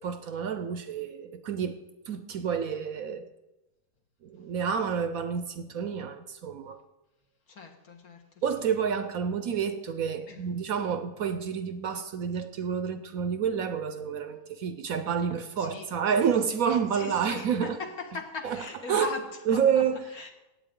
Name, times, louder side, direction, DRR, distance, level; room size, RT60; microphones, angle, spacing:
voice 1, 0.0-1.8 2.1-3.3 4.2-6.8 8.4-17.8 18.4-18.6 18.9-19.1 19.5-20.0, right 7 dB, 65° right, 9 dB, 1.0 m, -29 dB
voice 2, 7.5-8.4 10.3-10.5 15.6-15.9 16.9-20.3, left 3 dB, 60° left, 2 dB, 1.8 m, -39 dB
16.0 x 8.7 x 3.7 m, 1.0 s
omnidirectional pair, 1.8 m